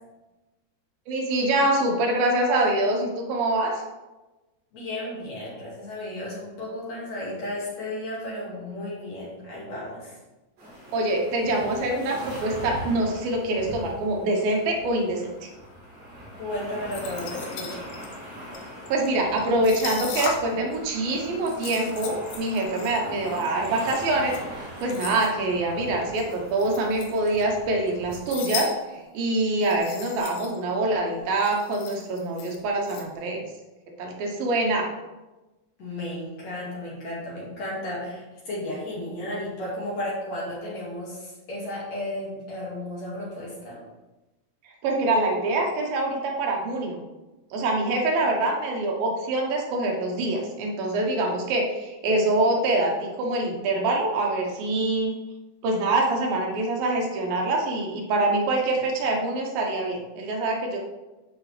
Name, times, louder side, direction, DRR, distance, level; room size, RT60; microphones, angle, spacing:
voice 1, 1.1-3.8 10.9-15.5 18.9-33.5 34.0-34.9 44.8-47.0 47.5-55.2 55.6-60.8, right 2 dB, 75° right, 0 dB, 2.7 m, -25 dB
voice 2, 4.7-10.1 16.4-17.9 35.8-43.8, left 1 dB, 50° left, -6 dB, 2.8 m, -34 dB
sound 1, 10.6-28.3, equal, 50° right, 4.1 m, -41 dB
sound 2, 16.9-20.8 21.1-25.3 26.1-27.6 27.9-28.7 29.0-29.1 29.5-30.6 30.9-31.0 31.2-33.0, left 6 dB, 75° left, 2.5 m, -37 dB
12.0 x 4.8 x 3.3 m, 1.1 s
omnidirectional pair, 4.4 m